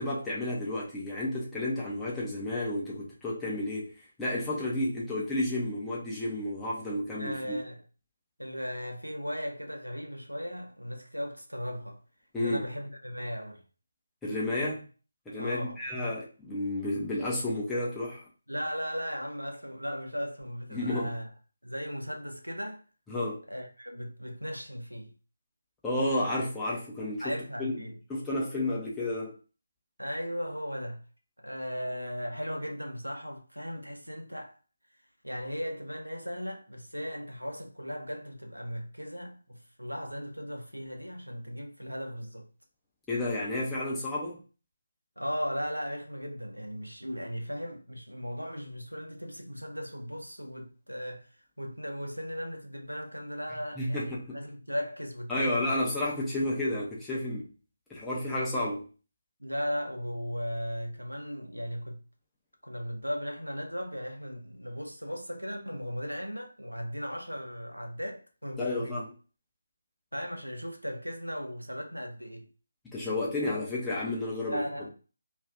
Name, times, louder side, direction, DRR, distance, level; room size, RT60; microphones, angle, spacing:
voice 1, 0.0-3.9 4.2-7.6 12.3-12.7 14.2-14.9 15.3-18.2 20.7-21.1 23.1-23.4 25.8-27.8 28.1-29.4 43.1-44.4 53.8-54.4 55.3-57.4 57.9-58.9 68.6-69.0 72.8-74.7, left 1 dB, 5° left, 0.6 m, -31 dB
voice 2, 7.2-7.8 8.4-12.0 12.3-13.6 15.4-15.8 18.5-21.3 21.6-22.8 23.5-25.1 27.2-28.0 30.0-31.0 31.4-34.6 35.2-42.5 45.2-51.3 51.6-55.7 59.4-62.0 62.6-69.1 70.1-72.5 74.5-74.9, equal, 90° right, 0.6 m, -37 dB
2.5 x 2.4 x 3.5 m
figure-of-eight pair, 150°, 0 cm